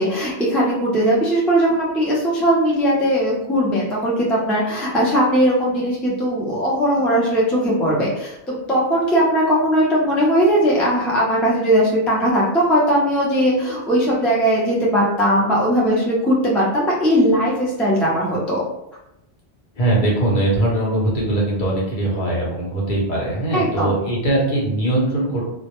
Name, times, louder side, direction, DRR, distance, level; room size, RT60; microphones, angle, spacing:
voice 1, 0.0-18.6 23.5-24.0, equal, ahead, -6 dB, 0.3 m, -19 dB
voice 2, 19.8-25.4, right 1 dB, 55° left, -4 dB, 0.8 m, -21 dB
2.1 x 2.1 x 2.9 m, 0.85 s
omnidirectional pair, 1.1 m